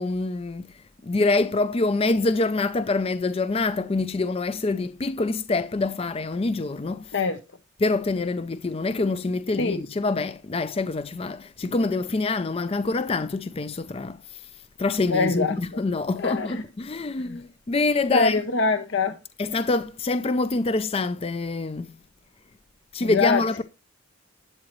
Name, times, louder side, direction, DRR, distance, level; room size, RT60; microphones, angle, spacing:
voice 1, 0.0-7.1 7.8-14.5 14.8-18.4 19.4-21.9 22.9-23.6, left 3 dB, 30° left, 0.4 m, -26 dB
voice 2, 15.1-15.8 16.2-16.6 17.2-17.4 18.1-19.2 23.0-23.6, left 3 dB, 60° left, 0.8 m, -24 dB
11.5 x 8.6 x 3.0 m
head